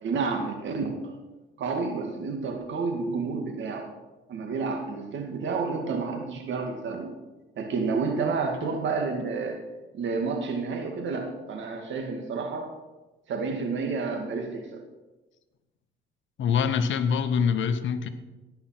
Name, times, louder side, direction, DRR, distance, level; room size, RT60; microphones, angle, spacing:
voice 1, 0.0-1.1 1.6-3.9 4.3-7.1 7.6-9.6 9.9-12.7 13.3-14.8, right 4 dB, 70° right, 3 dB, 2.2 m, -30 dB
voice 2, 16.4-18.1, left 6 dB, 70° left, 10 dB, 1.1 m, -24 dB
17.0 x 5.8 x 6.0 m, 1.1 s
cardioid pair, 90°, 20 cm